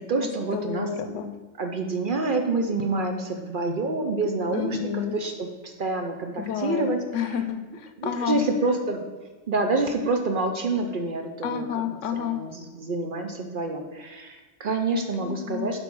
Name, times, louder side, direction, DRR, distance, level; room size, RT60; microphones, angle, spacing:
voice 1, 0.0-0.9 1.6-7.0 8.0-9.0 9.5-11.8 12.1-15.8, right 3 dB, 50° right, 4 dB, 0.7 m, -27 dB
voice 2, 0.5-1.3 4.5-5.1 6.4-8.4 11.4-12.4 15.2-15.8, left 8 dB, 75° left, 8 dB, 0.9 m, -30 dB
7.6 x 3.7 x 6.1 m, 1.3 s
omnidirectional pair, 1.3 m